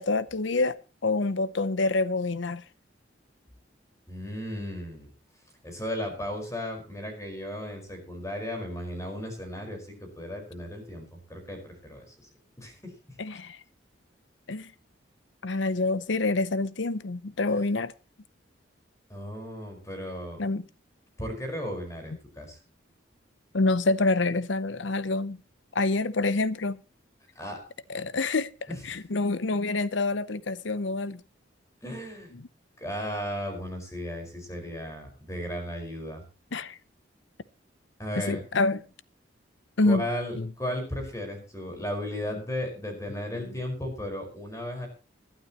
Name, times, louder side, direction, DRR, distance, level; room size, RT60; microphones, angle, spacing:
voice 1, 0.0-2.6 13.2-13.6 14.5-14.7 15.4-17.9 20.4-20.6 23.5-25.4 25.7-26.8 27.9-28.5 28.8-31.2 32.3-32.5 36.5-36.8 38.3-38.8 39.8-40.0 40.4-40.5 43.3-43.4, left 3 dB, 75° left, 0.8 m, -27 dB
voice 2, 4.1-5.1 5.6-12.3 12.6-13.2 17.5-17.6 19.1-20.4 21.2-22.6 27.3-27.6 28.7-28.8 31.8-32.3 32.8-36.2 38.0-38.4 39.9-44.9, equal, 15° left, 5.0 m, -35 dB
21.0 x 12.5 x 3.0 m
head